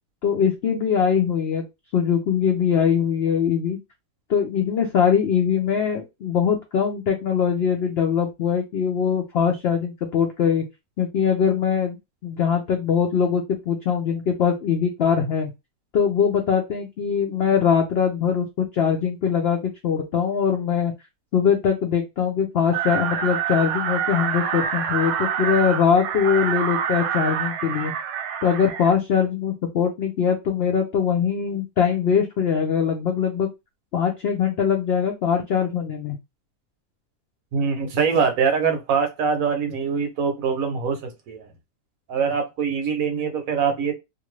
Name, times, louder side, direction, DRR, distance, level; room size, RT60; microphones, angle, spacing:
voice 1, 0.2-1.6 1.9-3.8 4.3-10.6 11.0-12.0 12.2-15.5 15.9-20.9 21.3-27.9 28.4-33.5 33.9-36.2, left 7 dB, 75° left, 0.5 m, -22 dB
sound 1, 22.7-28.9, right 8 dB, 85° right, 1.1 m, -26 dB
voice 2, 37.5-41.5 42.1-43.9, right 6 dB, 65° right, 1.0 m, -23 dB
2.5 x 2.5 x 3.1 m
omnidirectional pair, 1.7 m